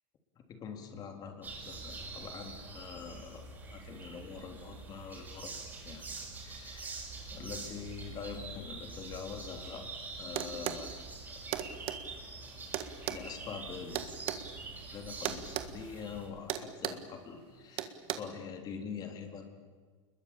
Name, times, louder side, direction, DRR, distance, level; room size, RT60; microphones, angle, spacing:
voice 1, 0.5-5.5 5.8-7.0 7.3-9.9 10.2-11.8 13.1-14.3 14.9-19.5, left 6 dB, 25° left, 5 dB, 3.6 m, -45 dB
sound 1, 1.4-16.3, right 3 dB, 10° right, 5.9 m, -45 dB
sound 2, 10.3-10.8 11.5-12.0 12.7-14.4 15.2-15.7 16.0-16.1 16.5-17.1 17.8-18.1, right 13 dB, 35° right, 1.8 m, -35 dB
29.0 x 21.5 x 8.8 m, 1.5 s
supercardioid pair, 165°, 15 cm